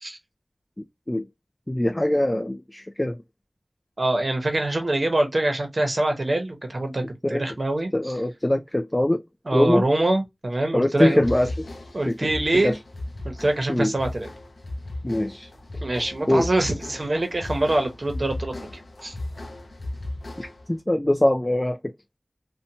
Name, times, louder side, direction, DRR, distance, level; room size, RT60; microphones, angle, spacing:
voice 1, 1.7-3.2 7.2-7.5 7.9-9.2 9.5-9.9 10.7-11.7 12.1-12.2 12.6-12.8 13.7-13.9 15.0-15.5 16.3-16.5 20.4-21.9, left 1 dB, 25° left, 0.3 m, -22 dB
voice 2, 4.0-7.9 9.5-11.2 11.9-12.7 13.2-14.3 15.8-19.1, right 1 dB, 65° right, 0.8 m, -24 dB
sound 1, 11.2-20.7, left 1 dB, 90° left, 0.5 m, -36 dB
2.7 x 2.1 x 2.7 m
wide cardioid pair, 40°, 0 cm